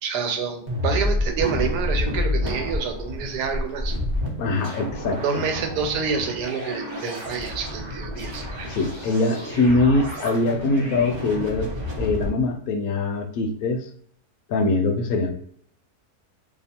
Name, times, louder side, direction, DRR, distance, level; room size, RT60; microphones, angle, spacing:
voice 1, 0.0-4.0 5.2-8.7, right 6 dB, 85° right, 5 dB, 1.2 m, -28 dB
sound 1, 0.7-12.3, left 1 dB, 25° right, 0.6 m, -29 dB
voice 2, 4.4-5.4 8.6-11.7 12.0-13.9 14.5-15.3, left 2 dB, 70° left, 4 dB, 0.9 m, -23 dB
2.8 x 2.4 x 4.1 m, 0.66 s
omnidirectional pair, 1.7 m